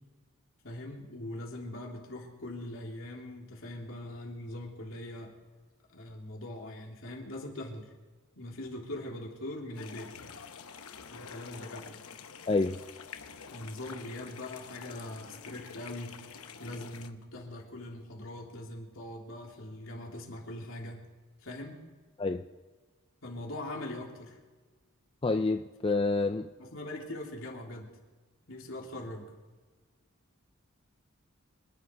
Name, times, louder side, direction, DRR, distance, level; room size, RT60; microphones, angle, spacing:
voice 1, 0.6-5.3 5.9-7.9 8.4-10.1 11.1-12.0 13.5-16.2 16.6-21.1 21.4-21.8 23.2-24.4 26.6-27.9 28.5-29.3, left 1 dB, 65° left, -1 dB, 3.3 m, -41 dB
sound 1, 9.7-17.1, left 6 dB, 85° left, 1.0 m, -47 dB
voice 2, 12.5-12.8 22.2-22.4 25.2-26.5, left 3 dB, 25° left, 7 dB, 0.4 m, -28 dB
26.0 x 10.5 x 4.7 m, 1.4 s
head